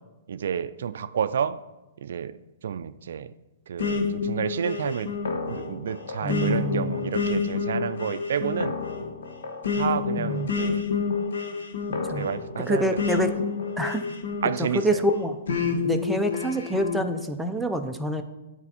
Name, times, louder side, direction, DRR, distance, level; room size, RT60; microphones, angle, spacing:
voice 1, 0.3-1.6 2.0-2.3 2.6-3.3 3.7-5.1 5.5-8.7 9.8-10.8 12.1-12.9 14.4-14.8, right 8 dB, 70° right, 14 dB, 0.3 m, -30 dB
sound 1, 3.8-14.9 15.5-17.0, left 5 dB, 80° left, 1.1 m, -29 dB
voice 2, 6.2-7.2 10.2-10.5 12.1-12.3 12.6-13.3 13.8-14.0 14.6-18.2, equal, ahead, 4 dB, 0.5 m, -27 dB
9.7 x 4.3 x 4.2 m, 1.0 s
hypercardioid pair, 145°, 0 cm